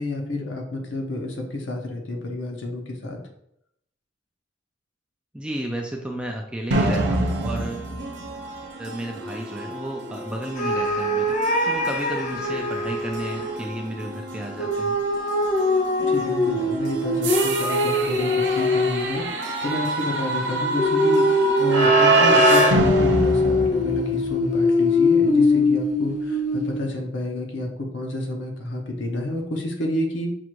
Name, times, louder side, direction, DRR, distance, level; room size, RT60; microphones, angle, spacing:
voice 1, 0.0-3.2 16.1-30.3, left 1 dB, 70° left, 2 dB, 0.8 m, -30 dB
voice 2, 5.3-7.9 8.8-15.0, right 1 dB, 5° right, 1 dB, 0.3 m, -33 dB
sound 1, 6.7-24.4, right 2 dB, 70° right, 0.8 m, -26 dB
sound 2, 10.6-13.5 14.6-19.4 20.8-26.9, left 2 dB, 40° left, 0.6 m, -22 dB
5.9 x 2.5 x 3.0 m, 0.73 s
head